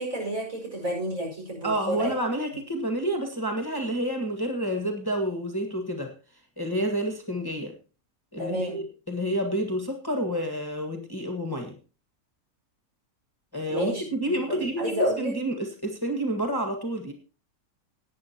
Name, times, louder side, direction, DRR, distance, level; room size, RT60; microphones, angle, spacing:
voice 1, 0.0-2.1 8.4-8.8 13.7-15.3, equal, 65° right, -1 dB, 5.5 m, -30 dB
voice 2, 1.6-6.1 6.6-7.7 8.3-11.8 13.5-17.1, right 1 dB, 15° left, 2 dB, 1.5 m, -29 dB
18.0 x 9.3 x 2.9 m, 0.35 s
omnidirectional pair, 1.6 m